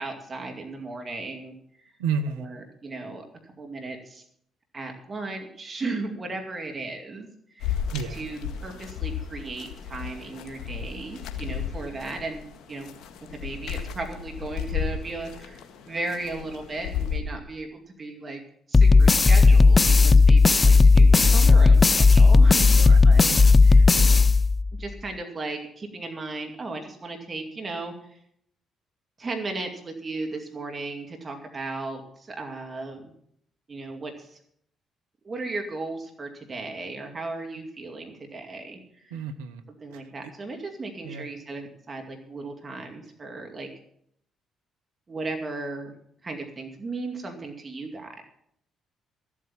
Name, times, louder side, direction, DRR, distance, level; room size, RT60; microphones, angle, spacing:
voice 1, 0.0-1.9 2.4-4.2 4.7-7.3 7.5-7.8 8.1-12.9 13.3-18.4 18.7-22.7 23.0-23.2 23.6-23.8 24.8-28.2 29.2-33.1 33.7-34.4 35.2-39.2 39.8-43.7 45.1-45.9 46.2-48.2, right 3 dB, 35° right, 3 dB, 2.4 m, -36 dB
voice 2, 2.0-2.5 7.9-8.2 22.6-23.0 23.3-23.5 39.1-39.6 39.9-40.0 41.0-41.3, right 5 dB, 85° right, 8 dB, 0.9 m, -31 dB
sound 1, 7.6-17.2, left 8 dB, 65° left, 1.7 m, -34 dB
sound 2, 18.7-24.8, left 3 dB, 30° left, 0.5 m, -15 dB
14.0 x 8.6 x 7.1 m, 0.68 s
hypercardioid pair, 50°, 0 cm